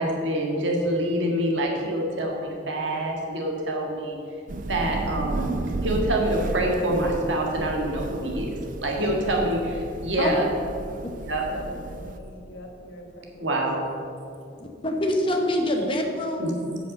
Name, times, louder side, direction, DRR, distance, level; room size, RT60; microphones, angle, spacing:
voice 1, 0.0-4.2 4.7-10.5 11.2-11.4 13.4-13.8 16.4-16.8, right 1 dB, 75° right, 0 dB, 1.9 m, -26 dB
Thunder / Rain, 4.5-12.2, right 2 dB, 45° right, 0.5 m, -33 dB
voice 2, 11.3-13.9 14.5-14.7, equal, 75° left, 2 dB, 1.4 m, -43 dB
voice 3, 14.8-16.6, left 1 dB, 25° left, 2 dB, 1.1 m, -25 dB
8.0 x 7.1 x 6.6 m, 2.5 s
head